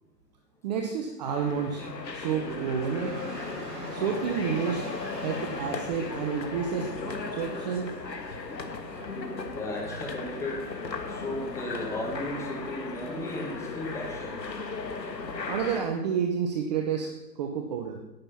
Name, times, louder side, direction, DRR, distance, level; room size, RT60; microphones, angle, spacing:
voice 1, 0.6-1.8 2.1-3.2 3.9-4.8 5.2-7.9 15.5-18.0, right 7 dB, 25° right, 4 dB, 0.9 m, -30 dB
sound 1, 1.2-15.9, left 4 dB, 90° left, 1.7 m, -36 dB
Dog / Rain, 2.3-14.4, right 2 dB, 55° right, 3.9 m, -47 dB
voice 2, 9.5-10.7 11.1-14.4, left 1 dB, 5° left, 0 dB, 1.6 m, -35 dB
10.5 x 9.0 x 5.7 m, 1.0 s
hypercardioid pair, 140°, 49 cm